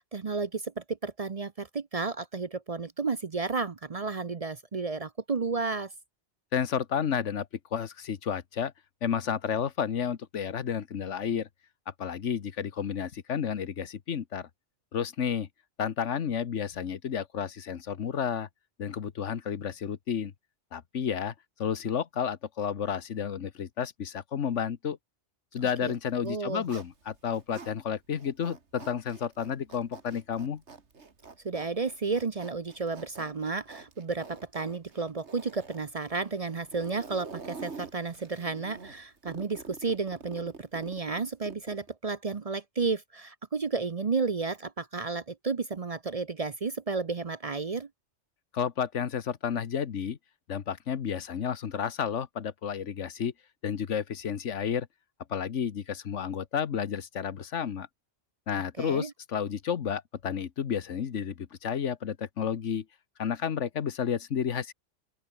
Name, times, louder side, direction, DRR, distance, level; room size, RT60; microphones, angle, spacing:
voice 1, 0.0-5.9 25.8-25.9 26.2-26.6 31.4-47.9 58.8-59.1, right 4 dB, 35° right, 0.7 m, -32 dB
voice 2, 6.5-8.7 9.0-11.5 12.0-14.5 14.9-15.5 15.8-18.5 18.8-20.3 20.7-21.3 21.6-25.0 25.5-30.6 48.5-50.2 50.5-53.3 53.6-54.9 55.3-57.9 58.5-62.8 63.2-64.7, left 7 dB, 85° left, 1.5 m, -31 dB
Zipper (clothing), 26.1-27.7 28.1-41.9, right 4 dB, 70° right, 2.4 m, -47 dB
open air
omnidirectional pair, 1.2 m